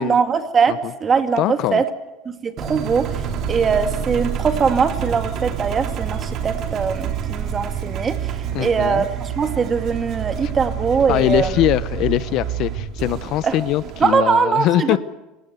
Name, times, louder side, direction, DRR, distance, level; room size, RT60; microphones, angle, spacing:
voice 1, 0.0-1.8 2.3-11.6 13.4-13.6 14.0-15.0, right 6 dB, 25° right, 8 dB, 2.2 m, -21 dB
voice 2, 1.4-1.8 8.5-9.0 11.1-15.0, left 15 dB, 50° left, 17 dB, 0.7 m, -21 dB
Engine, 2.6-14.2, right 8 dB, 45° right, 2.9 m, -28 dB
27.0 x 17.0 x 8.2 m, 1.0 s
supercardioid pair, 130°, 0 cm